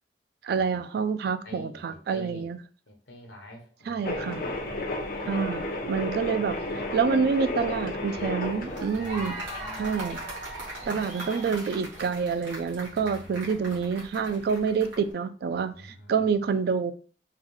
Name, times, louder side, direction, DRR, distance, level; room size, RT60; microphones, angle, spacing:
voice 1, 0.4-2.6 3.9-4.4 5.3-6.6 6.9-9.4 9.8-10.2 10.9-16.9, right 5 dB, 60° right, 0.3 m, -27 dB
voice 2, 1.4-2.5 2.9-5.6 5.9-6.3 8.1-8.3 8.9-10.0 10.8-11.5 12.9-13.8 15.7-16.3, left 1 dB, 75° left, 1.0 m, -48 dB
sound 1, 4.0-11.0, left 2 dB, 50° left, 0.6 m, -33 dB
sound 2, 8.5-15.1, right 1 dB, 80° right, 1.4 m, -39 dB
3.7 x 2.2 x 3.1 m
head